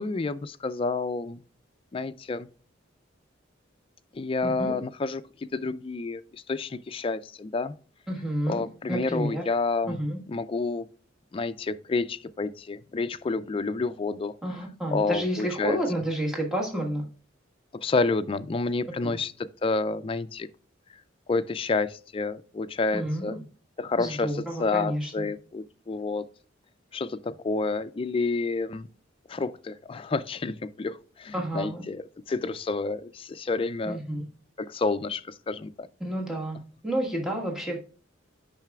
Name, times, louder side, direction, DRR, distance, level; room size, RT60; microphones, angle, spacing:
voice 1, 0.0-1.4 1.9-2.5 4.1-5.2 5.5-7.7 8.5-10.0 10.3-10.9 11.3-14.3 14.9-15.8 17.8-20.5 21.3-23.3 23.8-26.2 26.9-28.9 29.3-32.0 32.3-34.0 34.6-35.9, left 3 dB, 30° left, 0.3 m, -29 dB
voice 2, 4.4-4.7 8.1-9.5 9.9-10.2 14.4-17.1 19.0-19.2 22.9-23.4 24.0-25.3 31.3-31.8 33.8-34.3 36.0-37.8, right 1 dB, ahead, 1.4 m, -30 dB
8.9 x 5.7 x 2.3 m
head